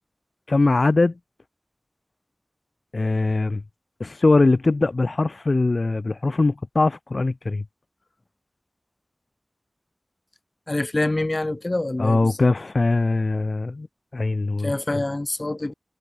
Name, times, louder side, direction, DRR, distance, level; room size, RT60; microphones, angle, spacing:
voice 1, 0.5-1.1 2.9-3.6 4.0-7.6 12.0-13.9 14.1-15.0, left 3 dB, 80° left, 1.8 m, -21 dB
voice 2, 10.7-12.4 14.6-15.7, left 2 dB, 45° left, 5.0 m, -26 dB
wide cardioid pair, 55°, 0 cm